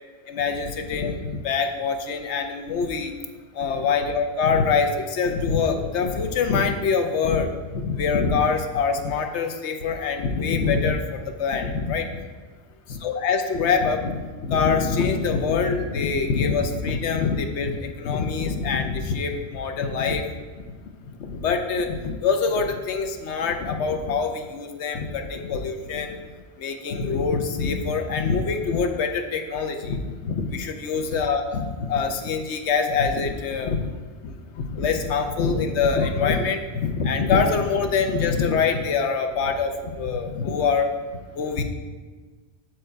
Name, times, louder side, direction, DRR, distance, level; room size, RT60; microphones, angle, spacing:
voice 1, 0.3-3.1 3.5-12.2 12.9-20.4 21.2-26.2 26.6-33.8 34.2-40.9 41.4-41.6, left 5 dB, 80° left, 6 dB, 1.0 m, -24 dB
7.6 x 4.8 x 4.6 m, 1.4 s
omnidirectional pair, 1.2 m